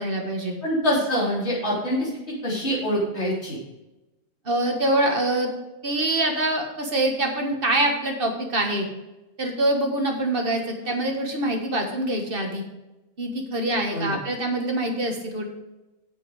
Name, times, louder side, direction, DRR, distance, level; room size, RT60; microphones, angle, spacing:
voice 1, 0.0-0.6 4.4-5.5 5.8-8.9 9.4-12.6 13.2-15.4, right 1 dB, 40° right, 3 dB, 1.5 m, -25 dB
voice 2, 0.6-2.1 2.4-3.6 13.9-14.2, equal, 45° left, -5 dB, 4.0 m, -25 dB
8.1 x 7.9 x 4.9 m, 1.0 s
omnidirectional pair, 1.5 m